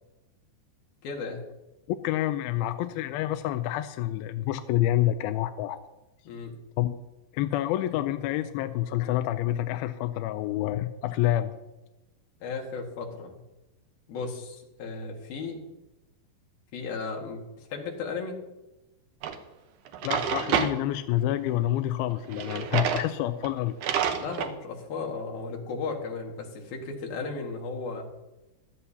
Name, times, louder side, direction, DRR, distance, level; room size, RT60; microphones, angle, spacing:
voice 1, 1.0-1.4 6.3-6.6 12.4-13.4 14.1-15.7 16.7-17.4 17.7-18.4 24.2-28.1, left 4 dB, 65° left, 1 dB, 3.5 m, -35 dB
voice 2, 2.0-5.8 6.8-6.9 7.3-11.5 20.0-23.7, left 13 dB, 85° left, 10 dB, 2.2 m, -28 dB
Drawer open or close, 19.2-19.4 19.9-20.7 22.3-23.1 23.4-23.5 23.8-24.5, right 8 dB, 70° right, 1.9 m, -28 dB
16.5 x 13.0 x 2.8 m, 0.99 s
omnidirectional pair, 4.7 m